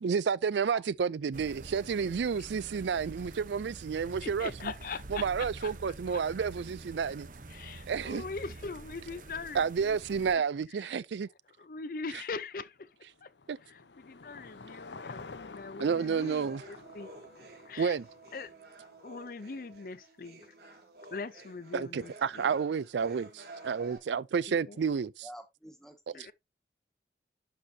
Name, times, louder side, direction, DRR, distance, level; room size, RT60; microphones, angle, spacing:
voice 1, 0.0-4.7 5.1-7.3 7.9-8.2 9.5-11.3 13.5-13.6 15.8-16.6 17.8-18.1 21.7-25.2, right 6 dB, 80° right, 0.4 m, -30 dB
sound 1, 1.3-10.4, right 2 dB, 45° right, 0.9 m, -47 dB
voice 2, 4.2-5.7 6.1-6.2 7.5-10.4 10.8-11.0 11.6-12.9 13.2-13.3 13.6-17.1 17.7-18.0 18.3-18.5 19.0-20.5 21.1-22.5 24.5-24.8 26.1-26.3, left 4 dB, 50° left, 0.5 m, -42 dB
Car passing by / Engine, 12.5-18.9, left 4 dB, 80° left, 0.9 m, -49 dB
sound 2, 16.0-24.0, right 2 dB, 65° right, 3.3 m, -51 dB
voice 3, 25.2-26.3, equal, 5° left, 1.4 m, -49 dB
11.5 x 5.7 x 2.7 m
head